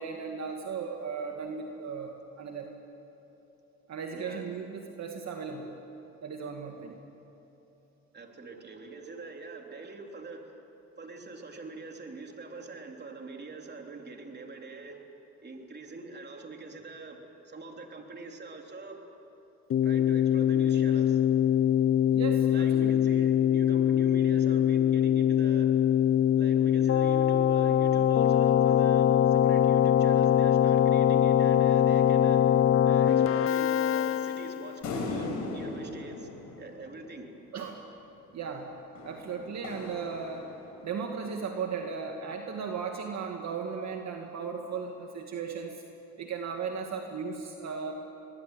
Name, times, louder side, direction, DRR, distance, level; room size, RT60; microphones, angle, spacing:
voice 1, 0.0-2.7 3.9-5.8 6.2-7.0 22.1-22.9 37.5-37.8 38.3-38.7 39.0-40.5 40.8-45.8 46.2-47.9, right 5 dB, 60° right, 2 dB, 2.2 m, -36 dB
voice 2, 4.1-4.4 8.1-10.5 11.0-15.0 15.4-17.2 17.5-19.0 19.8-21.2 22.5-25.7 26.4-32.4 32.9-36.3 36.6-37.3, right 3 dB, 35° right, 2 dB, 3.5 m, -44 dB
Keyboard (musical), 19.7-34.8, left 10 dB, 45° left, 0.6 m, -23 dB
sound 1, 34.8-37.5 39.0-41.0, left 3 dB, 75° left, 4.7 m, -38 dB
25.0 x 20.0 x 9.2 m, 3.0 s
cardioid pair, 90°, 30 cm